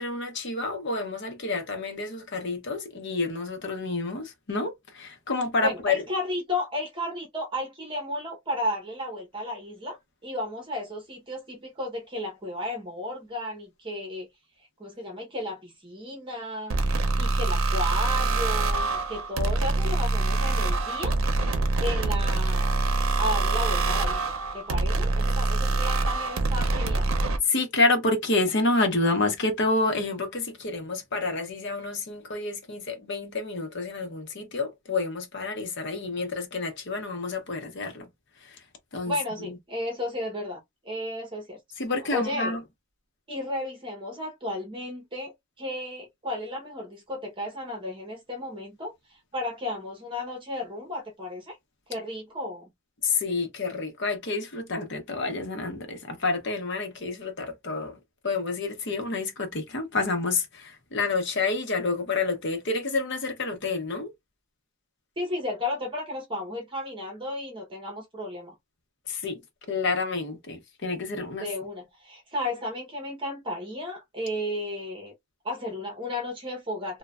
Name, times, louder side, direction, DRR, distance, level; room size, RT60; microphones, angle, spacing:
voice 1, 0.0-6.0 25.6-25.8 27.4-38.1 38.4-38.6 38.9-39.6 41.8-42.6 53.0-58.0 58.2-64.1 69.1-69.4 69.7-71.5, left 3 dB, 55° left, 0.8 m, -29 dB
voice 2, 5.6-10.0 10.2-14.3 14.8-16.8 17.2-21.2 21.8-27.1 39.1-41.6 42.1-42.6 43.3-45.3 45.6-51.6 51.9-52.7 65.2-68.5 71.4-75.1 75.4-77.0, left 1 dB, 25° right, 0.9 m, -33 dB
sound 1, 16.7-27.4, right 3 dB, 75° right, 0.6 m, -25 dB
3.1 x 2.2 x 2.4 m
head